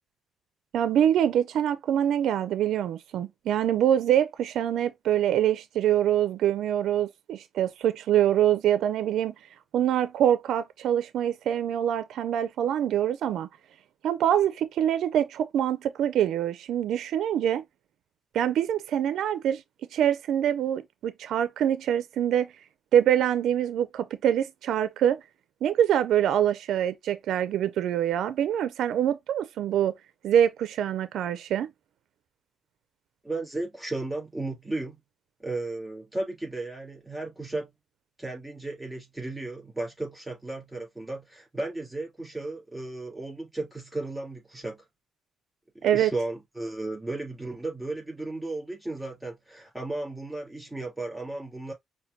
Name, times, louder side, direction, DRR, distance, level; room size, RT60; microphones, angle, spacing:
voice 1, 0.7-9.3 9.7-13.5 14.0-17.6 18.3-19.6 19.9-22.5 22.9-25.2 25.6-29.9 30.2-31.7 45.8-46.1, right 10 dB, 80° right, 0.4 m, -25 dB
voice 2, 33.2-35.0 35.4-37.7 38.2-44.8 45.7-51.7, right 2 dB, 5° right, 3.3 m, -34 dB
5.7 x 2.2 x 2.6 m
cardioid pair, 120°, 0 cm